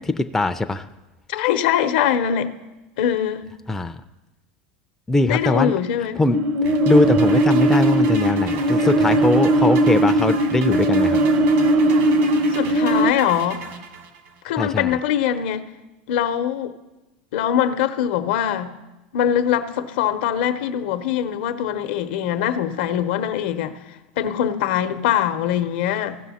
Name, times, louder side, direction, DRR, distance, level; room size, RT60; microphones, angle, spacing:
voice 1, 0.2-0.9 3.7-4.0 5.1-5.7 6.2-11.2 14.6-15.0, left 2 dB, 10° left, 0.4 m, -21 dB
voice 2, 1.3-2.5 3.0-3.5 5.3-6.2 12.5-13.6 14.4-15.7 16.1-16.7 17.3-18.8 19.1-23.8 24.2-26.2, left 10 dB, 75° left, 0.7 m, -22 dB
sound 1, 6.3-13.1, right 1 dB, 40° right, 0.6 m, -18 dB
sound 2, 6.6-14.4, right 5 dB, 60° right, 1.3 m, -35 dB
16.0 x 5.6 x 4.2 m
supercardioid pair, 115°, 5 cm